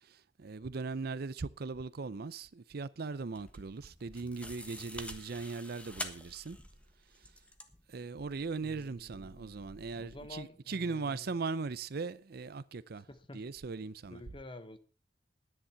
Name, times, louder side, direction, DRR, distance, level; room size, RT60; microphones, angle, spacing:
voice 1, 0.0-6.6 7.1-7.3 7.9-13.1 13.3-14.2, right 4 dB, 60° right, 0.5 m, -39 dB
sound 1, 3.1-10.5, left 1 dB, 5° left, 1.3 m, -48 dB
voice 2, 8.6-11.3 13.1-13.4 14.1-14.8, left 2 dB, 30° left, 1.0 m, -50 dB
10.5 x 10.0 x 5.7 m
head